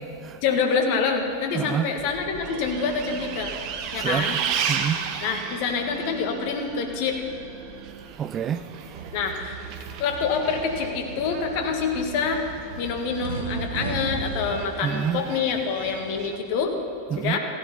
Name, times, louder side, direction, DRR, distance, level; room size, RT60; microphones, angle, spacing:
voice 1, 0.4-3.5 3.9-4.4 5.2-7.2 9.1-9.5 10.0-12.4 12.8-16.7 17.2-17.4, left 5 dB, 45° left, 1.6 m, -26 dB
voice 2, 1.5-1.9 3.9-5.0 8.2-8.6 14.8-15.3 17.1-17.4, right 8 dB, 25° right, 0.4 m, -28 dB
Bus, 2.0-16.4, right 7 dB, 40° right, 1.0 m, -35 dB
sound 1, 8.9-14.6, right 4 dB, 60° right, 1.3 m, -36 dB
15.0 x 11.0 x 5.6 m
figure-of-eight pair, 90°, 0 cm